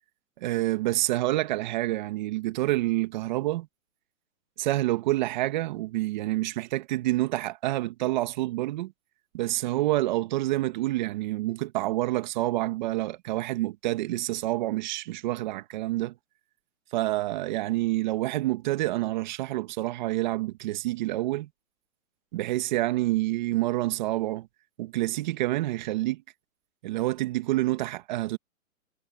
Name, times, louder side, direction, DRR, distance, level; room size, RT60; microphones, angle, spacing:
voice 1, 0.4-3.7 4.6-8.9 9.3-16.1 16.9-21.5 22.3-24.5 24.8-26.2 26.8-28.4, right 17 dB, 35° right, 1.7 m, -28 dB
hypercardioid pair, 155°, 41 cm